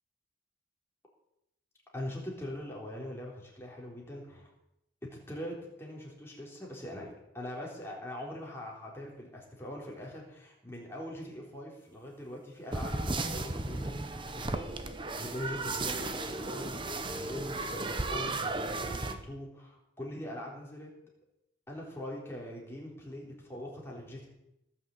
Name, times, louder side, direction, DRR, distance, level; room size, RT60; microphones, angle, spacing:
voice 1, 1.9-4.5 5.1-14.9 15.1-20.9 21.7-24.3, left 1 dB, 15° left, -3 dB, 3.8 m, -42 dB
sound 1, 12.7-19.1, right 2 dB, 25° right, 0.9 m, -35 dB
18.0 x 6.7 x 8.4 m, 0.85 s
head